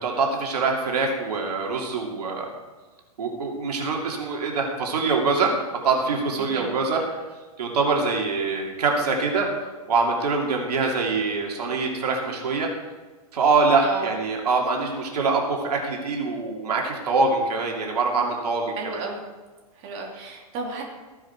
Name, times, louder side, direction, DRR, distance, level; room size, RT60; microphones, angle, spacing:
voice 1, 0.0-2.5 3.2-5.5 5.8-7.2 7.6-9.5 9.9-12.7 13.3-19.0, right 4 dB, 85° right, 0 dB, 2.8 m, -24 dB
voice 2, 6.4-6.7 13.8-14.1 18.8-19.2 19.8-20.8, right 4 dB, 40° right, 0 dB, 2.8 m, -33 dB
15.0 x 10.0 x 4.7 m, 1.3 s
hypercardioid pair, 135°, 20 cm